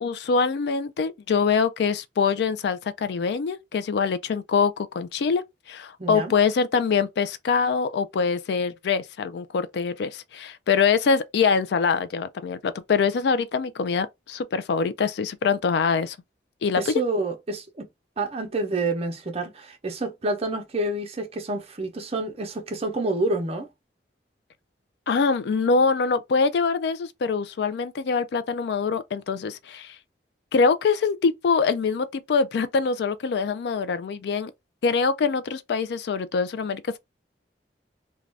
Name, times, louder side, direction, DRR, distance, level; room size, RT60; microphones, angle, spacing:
voice 1, 0.0-16.2 16.6-16.8 25.1-30.0 30.5-34.5 34.8-37.0, left 5 dB, 65° left, 0.3 m, -24 dB
voice 2, 6.0-6.3 16.8-17.9 18.2-23.7, right 2 dB, 35° right, 0.6 m, -28 dB
2.4 x 2.2 x 3.2 m
head